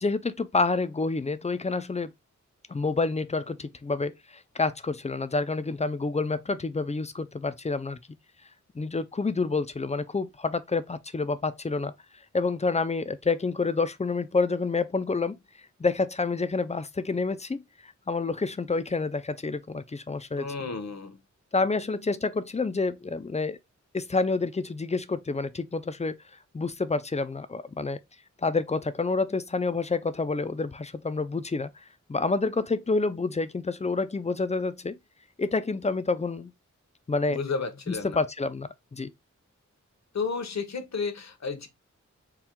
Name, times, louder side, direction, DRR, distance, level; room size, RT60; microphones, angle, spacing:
voice 1, 0.0-2.1 2.7-4.1 4.5-8.0 8.8-11.9 12.3-15.4 15.8-17.6 18.1-20.5 21.5-23.6 23.9-26.2 26.5-28.0 28.4-31.7 32.1-35.0 35.4-36.5 37.1-37.4 37.9-39.1, left 3 dB, 25° left, 0.4 m, -28 dB
voice 2, 20.4-21.2 37.3-38.2 40.1-41.7, left 4 dB, 65° left, 1.0 m, -32 dB
4.4 x 2.3 x 3.6 m
wide cardioid pair, 95°, 29 cm